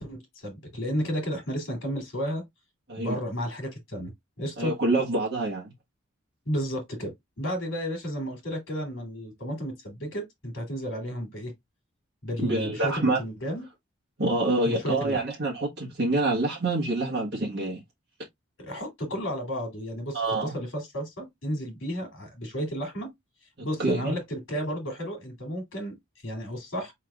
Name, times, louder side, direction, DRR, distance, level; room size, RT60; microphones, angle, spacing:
voice 1, 0.0-2.4 3.0-4.1 4.4-4.7 6.4-11.5 12.2-13.6 14.6-15.2 18.6-23.1 23.6-25.9 26.2-26.9, equal, 65° left, 2.9 m, -32 dB
voice 2, 4.6-5.7 12.4-13.2 14.2-17.8 20.1-20.5 23.8-24.2, right 2 dB, 50° right, 1.5 m, -26 dB
4.7 x 4.6 x 2.4 m
head